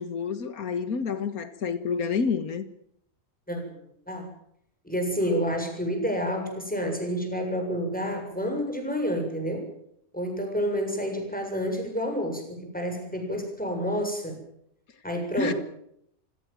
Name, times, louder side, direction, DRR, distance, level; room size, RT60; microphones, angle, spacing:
voice 1, 0.0-2.7 15.4-15.5, left 5 dB, 85° left, 2.0 m, -28 dB
voice 2, 3.5-3.8 4.1-4.3 4.8-9.7 10.1-14.4 15.0-15.6, equal, 5° left, 7.3 m, -29 dB
27.5 x 17.5 x 7.5 m
omnidirectional pair, 1.5 m